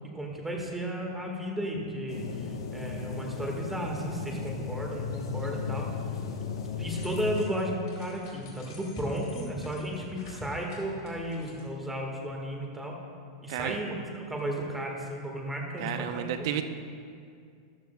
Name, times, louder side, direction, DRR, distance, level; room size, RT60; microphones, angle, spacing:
voice 1, 0.1-5.9 6.4-6.5 6.8-13.0 13.4-16.2, equal, 5° right, 0 dB, 1.7 m, -34 dB
sound 1, 2.1-7.5, left 5 dB, 90° left, 1.2 m, -35 dB
sound 2, 6.8-11.9, left 3 dB, 75° left, 2.9 m, -52 dB
voice 2, 15.8-16.6, right 10 dB, 60° right, 8 dB, 0.8 m, -31 dB
13.5 x 12.5 x 2.3 m, 2.3 s
supercardioid pair, 140°, 3 cm